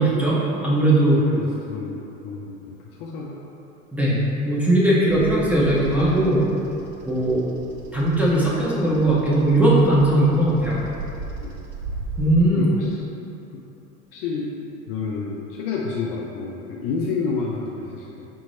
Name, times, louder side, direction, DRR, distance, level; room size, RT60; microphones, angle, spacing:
voice 1, 0.0-1.2 3.9-6.5 7.0-7.4 7.9-10.8 12.2-12.7, right 1 dB, 5° right, -7 dB, 0.8 m, -19 dB
voice 2, 1.1-3.4 7.2-7.3 11.4-11.6 12.6-13.0 13.5-13.7 14.1-18.3, left 4 dB, 45° left, -2 dB, 0.4 m, -30 dB
Bird vocalization bird call bird song, 5.1-12.4, right 3 dB, 45° right, 0.7 m, -36 dB
5.2 x 2.9 x 2.7 m, 2.9 s
figure-of-eight pair, 75°, 42 cm